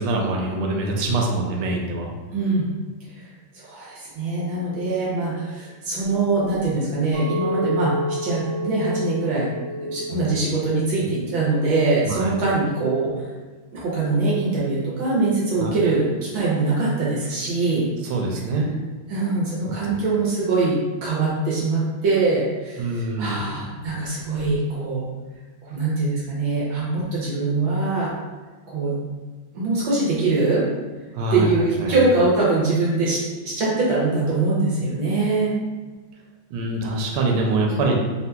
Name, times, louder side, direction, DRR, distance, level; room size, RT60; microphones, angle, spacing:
voice 1, 0.0-2.1 10.1-10.3 12.0-12.3 15.6-15.7 18.0-18.7 22.8-23.7 31.1-31.5 31.8-32.0 36.5-38.0, right 2 dB, 85° right, 0 dB, 1.5 m, -24 dB
voice 2, 2.3-2.7 3.1-3.2 3.5-9.5 9.8-13.2 13.7-17.9 19.1-25.0 25.6-28.1 28.7-29.0 29.5-30.6 31.3-33.2 33.4-35.5, right 3 dB, 70° right, -6 dB, 1.4 m, -23 dB
Chink clink, 7.1-11.5 11.8-12.3, equal, 45° right, 1.8 m, -30 dB
3.7 x 2.8 x 2.2 m, 1.3 s
omnidirectional pair, 2.4 m